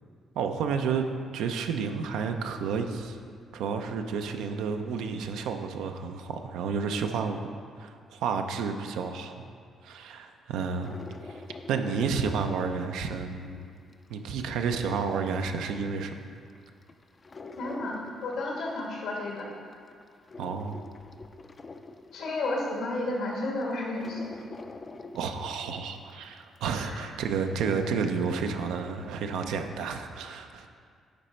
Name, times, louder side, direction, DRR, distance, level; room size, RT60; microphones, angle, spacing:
voice 1, 0.3-1.0 1.3-3.2 3.5-7.5 7.8-9.4 9.8-11.4 11.7-13.7 14.1-16.1 20.4-20.8 25.1-30.7, right 5 dB, 85° right, 6 dB, 0.5 m, -31 dB
sound 1, 10.7-13.3 13.7-16.1 16.5-19.1 19.5-22.6 23.1-23.2 23.6-28.8 29.2-29.3, left 3 dB, 30° left, 0.4 m, -46 dB
voice 2, 17.6-19.5 22.1-24.3 26.8-27.1, left 2 dB, 80° left, -2 dB, 1.6 m, -32 dB
10.5 x 4.1 x 4.4 m, 2.2 s
cardioid pair, 90°, 0 cm